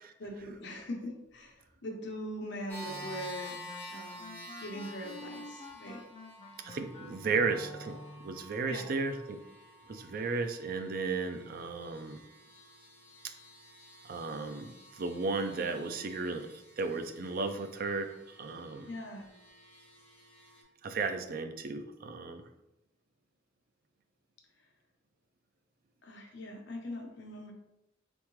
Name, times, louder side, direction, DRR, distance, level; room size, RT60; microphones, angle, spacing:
voice 1, 0.2-6.1 8.7-8.9 18.8-19.3 26.0-27.5, equal, 65° left, 1 dB, 0.9 m, -42 dB
sound 1, 2.7-20.6, left 1 dB, 10° left, 1.3 m, -50 dB
sound 2, 2.8-8.4, left 1 dB, 30° left, 0.4 m, -49 dB
voice 2, 6.6-8.0 8.2-9.4 9.9-12.2 13.2-13.3 14.0-16.5 16.8-18.9 20.8-22.4, right 4 dB, 50° right, 7 dB, 0.4 m, -34 dB
3.6 x 3.5 x 3.1 m, 0.90 s
head